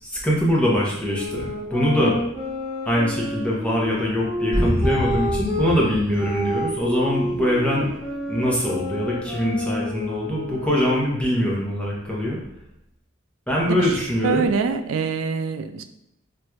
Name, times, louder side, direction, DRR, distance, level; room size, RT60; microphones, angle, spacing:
voice 1, 0.0-2.2 2.9-7.9 8.3-12.4 13.5-14.5, equal, 5° left, -4 dB, 0.7 m, -23 dB
sound 1, 1.0-5.7 6.2-11.1, left 1 dB, 10° right, 1.0 m, -29 dB
sound 2, 4.5-7.3, equal, 40° right, 1.1 m, -27 dB
voice 2, 14.2-15.8, right 5 dB, 85° right, 9 dB, 0.3 m, -24 dB
4.4 x 2.5 x 2.2 m, 0.80 s
head